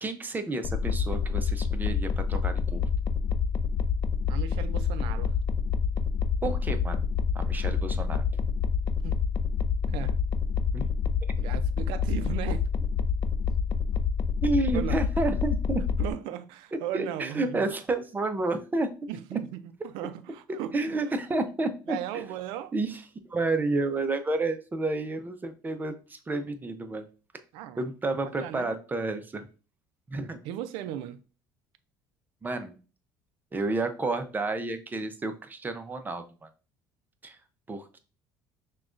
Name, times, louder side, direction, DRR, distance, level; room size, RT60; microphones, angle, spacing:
voice 1, 0.0-2.8 6.4-7.0 7.3-8.4 9.9-10.1 10.7-10.9 11.2-11.3 14.4-15.8 16.9-18.9 20.7-22.3 22.7-23.0 23.3-27.1 27.8-29.5 30.1-30.4 32.4-32.7 33.5-36.5 37.2-37.4 37.7-38.0, right 2 dB, 20° right, 0.6 m, -30 dB
sound 1, 0.6-16.1, left 6 dB, 50° left, 0.4 m, -27 dB
voice 2, 4.3-5.3 9.0-9.2 9.9-10.1 11.4-12.7 14.7-15.0 16.0-17.7 19.1-21.0 21.9-22.7 27.5-27.8 28.2-28.7 30.4-31.2, right 11 dB, 80° right, 0.4 m, -37 dB
5.9 x 2.3 x 2.5 m
supercardioid pair, 95°, 9 cm